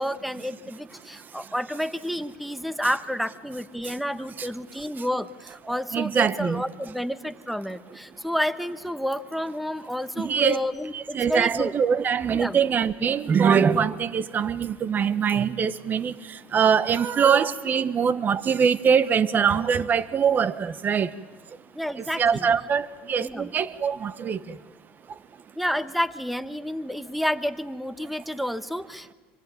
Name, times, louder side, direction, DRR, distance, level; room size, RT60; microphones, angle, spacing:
voice 1, 0.0-11.7 12.3-12.6 21.7-22.5 23.2-23.5 25.6-29.1, equal, ahead, 1.2 m, -30 dB
voice 2, 5.9-6.6 10.2-10.6 10.9-21.1 22.0-24.6 25.1-25.2, right 7 dB, 35° right, 1.2 m, -23 dB
26.0 x 23.5 x 9.5 m
supercardioid pair, 105°, 6 cm